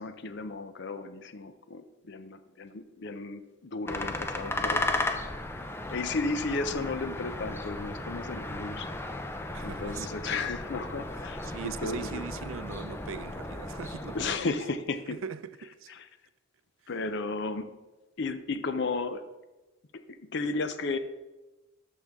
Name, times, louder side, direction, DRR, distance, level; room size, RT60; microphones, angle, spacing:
voice 1, 0.0-4.9 5.9-8.9 9.6-12.1 14.1-15.2 15.9-16.1 16.9-17.7 18.2-19.2 19.9-21.0, left 3 dB, 60° left, 10 dB, 0.6 m, -34 dB
sound 1, 3.9-14.4, left 2 dB, 10° left, 0.5 m, -35 dB
voice 2, 9.5-10.1 11.4-14.5 15.2-15.9, right 6 dB, 80° right, 14 dB, 0.4 m, -40 dB
13.0 x 5.5 x 3.6 m, 1.1 s
head